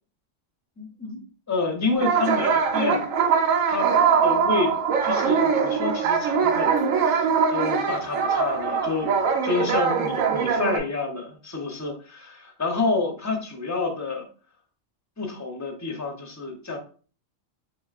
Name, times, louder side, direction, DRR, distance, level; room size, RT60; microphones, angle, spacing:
voice 1, 0.8-1.2 1.5-3.1 3.7-3.9 4.2-4.8 5.0-6.8 7.1-7.2 7.5-14.2 15.2-16.8, left 3 dB, 20° left, 3 dB, 0.6 m, -28 dB
sound 1, 2.0-10.8, right 6 dB, 80° right, 1.0 m, -22 dB
4.0 x 3.5 x 2.4 m, 0.40 s
omnidirectional pair, 1.3 m